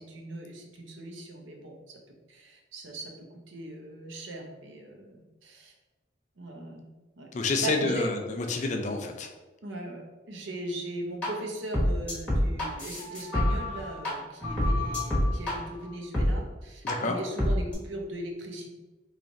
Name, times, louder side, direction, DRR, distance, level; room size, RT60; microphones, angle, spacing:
voice 1, 0.0-2.0 2.3-5.7 6.4-6.8 7.2-7.3 7.6-8.1 8.6-8.7 9.6-10.0 10.3-18.7, right 1 dB, 80° right, 1 dB, 0.7 m, -39 dB
voice 2, 7.3-9.3 16.8-17.2, left 3 dB, 40° left, 4 dB, 0.4 m, -28 dB
sound 1, 11.2-11.3 11.7-14.1 14.4-15.5 16.1-16.3 16.9-17.0 17.4-17.7, left 1 dB, 5° left, 1.1 m, -27 dB
3.1 x 2.4 x 3.9 m, 1.2 s
head